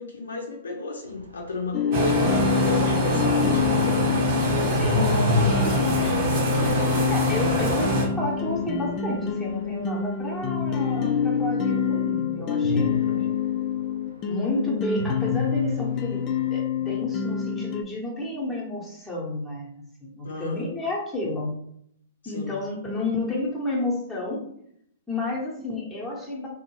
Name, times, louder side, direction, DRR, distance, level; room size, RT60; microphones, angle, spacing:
voice 1, 0.0-4.1 4.6-5.2 20.2-20.7 22.2-22.6, left 3 dB, 75° left, 1 dB, 0.6 m, -35 dB
sound 1, 1.0-11.3 12.6-14.5 14.9-16.5, left 2 dB, 75° right, 0.4 m, -33 dB
sound 2, 1.7-17.8, left 7 dB, 30° left, 0.3 m, -27 dB
sound 3, 1.9-8.1, right 1 dB, 45° right, 0.8 m, -24 dB
voice 2, 4.6-5.1 5.4-5.6 6.0-6.2 7.1-13.3 14.3-21.5 22.2-24.4 25.1-26.5, left 2 dB, 5° left, -4 dB, 0.8 m, -31 dB
2.5 x 2.1 x 3.0 m, 0.70 s
figure-of-eight pair, 110°, 0 cm